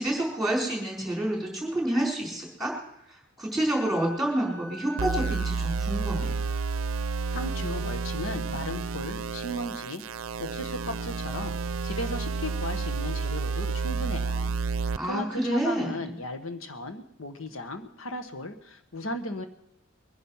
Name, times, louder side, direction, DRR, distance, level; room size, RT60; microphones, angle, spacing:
voice 1, 0.0-2.7 3.1-6.3 15.0-15.9, right 1 dB, ahead, -1 dB, 4.3 m, -28 dB
Wind instrument woodwind instrument, 3.6-7.1, left 1 dB, 50° left, 3.1 m, -44 dB
sound 1, 5.0-15.0, right 4 dB, 90° right, 0.5 m, -30 dB
voice 2, 7.3-10.0 10.4-11.5 11.8-19.5, left 1 dB, 85° left, 8 dB, 1.3 m, -36 dB
22.0 x 10.5 x 5.6 m, 0.83 s
head